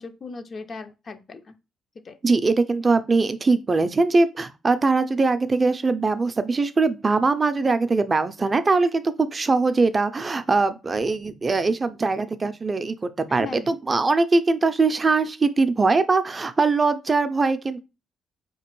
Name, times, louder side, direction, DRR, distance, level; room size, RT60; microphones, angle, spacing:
voice 1, 0.0-1.5 2.0-2.2 13.3-13.7, left 4 dB, 45° left, 0.5 m, -38 dB
voice 2, 2.2-17.8, right 3 dB, 30° right, 0.4 m, -21 dB
4.1 x 2.9 x 3.0 m
cardioid pair, 90°, 0 cm